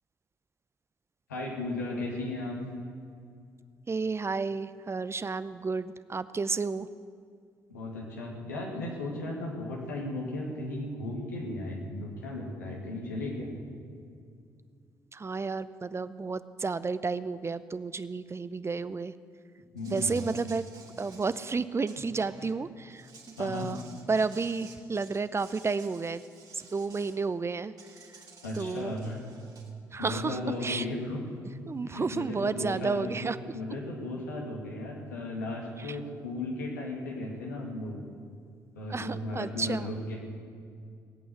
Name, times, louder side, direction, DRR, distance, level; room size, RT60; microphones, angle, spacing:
voice 1, 1.3-2.6 7.7-13.5 19.7-20.2 23.4-23.7 28.4-29.2 30.0-31.2 31.8-38.0 38.7-40.1, left 2 dB, 85° left, -2 dB, 2.2 m, -35 dB
voice 2, 3.9-6.9 15.1-19.1 19.8-20.6 21.0-23.1 23.4-23.8 24.1-26.2 26.5-27.7 28.5-28.9 29.9-30.9 31.7-33.4 35.8-36.0 38.9-39.9, right 4 dB, 30° right, 15 dB, 0.6 m, -31 dB
Insect, 19.8-22.5 22.9-27.2 27.8-29.7, right 4 dB, 45° right, 2.6 m, -53 dB
18.5 x 8.7 x 7.9 m, 2.3 s
hypercardioid pair, 45°, 9 cm